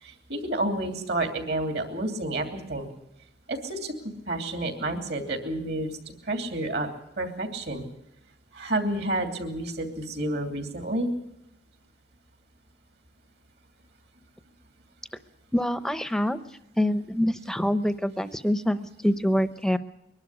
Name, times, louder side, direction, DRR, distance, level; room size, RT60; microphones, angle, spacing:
voice 1, 0.0-2.9 3.5-6.0 6.2-6.9 7.2-7.8 8.5-11.1, right 1 dB, 60° right, 5 dB, 2.9 m, -30 dB
voice 2, 15.5-16.4 16.8-19.8, equal, 5° left, 12 dB, 0.7 m, -25 dB
22.5 x 12.0 x 9.7 m, 0.85 s
head